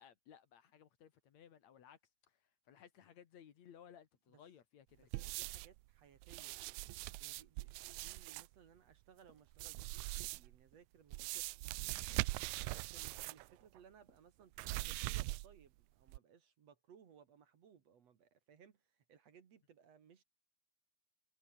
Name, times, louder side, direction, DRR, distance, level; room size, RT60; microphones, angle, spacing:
voice 1, 0.0-5.3, left 9 dB, 60° left, 2.7 m, -61 dB
voice 2, 5.0-6.6 7.2-12.1 12.7-20.2, right 7 dB, 55° right, 2.9 m, -64 dB
sound 1, 5.1-5.8 6.2-8.5 9.5-10.6 11.1-13.5 13.8-13.9 14.6-15.7 16.1-16.2, right 21 dB, 80° right, 1.7 m, -42 dB
sound 2, 9.3-9.9 10.2-10.5 10.7-10.9 11.2-11.8 12.1-12.4 12.6-12.8 13.1-13.3 13.6-13.8 14.1-14.2, right 3 dB, 25° right, 2.8 m, -71 dB
omnidirectional pair, 3.7 m